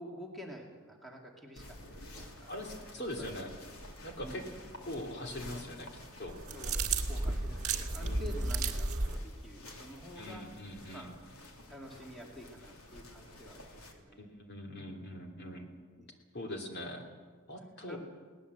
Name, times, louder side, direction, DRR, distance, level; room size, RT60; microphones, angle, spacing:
voice 1, 0.0-2.8 3.2-3.5 4.2-4.6 6.5-6.8 7.1-10.5 10.9-11.1 11.7-14.4 16.0-16.1 17.5-18.0, equal, ahead, -1 dB, 2.3 m, -49 dB
sound 1, 1.6-13.9, left 1 dB, 80° left, 3.1 m, -51 dB
voice 2, 2.5-3.5 4.0-4.4 4.8-5.9 6.2-6.4 8.0-8.4 10.2-11.1 14.2-15.7 16.3-17.0 17.5-18.0, left 1 dB, 50° left, 2 dB, 2.9 m, -42 dB
sound 2, 6.3-9.2, right 3 dB, 35° right, 1.8 m, -33 dB
21.5 x 18.5 x 8.0 m, 1.5 s
head